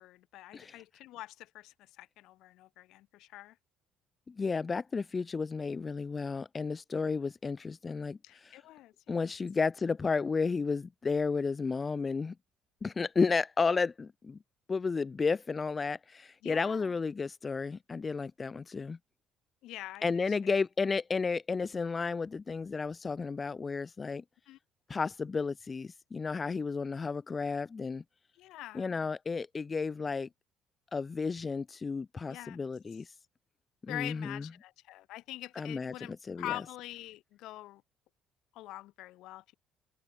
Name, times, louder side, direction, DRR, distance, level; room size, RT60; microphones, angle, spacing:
voice 1, 0.0-3.6 8.2-9.3 16.4-16.9 19.6-20.6 24.5-24.6 28.4-29.1 32.3-32.6 33.9-37.8 38.5-39.5, left 16 dB, 75° left, 6.0 m, -45 dB
voice 2, 4.3-8.6 9.1-12.3 12.8-14.4 14.7-19.0 20.0-24.2 24.9-28.0 28.7-30.3 30.9-33.1 33.9-34.4 35.6-36.5, left 4 dB, 30° left, 3.3 m, -32 dB
supercardioid pair, 75°, 0 cm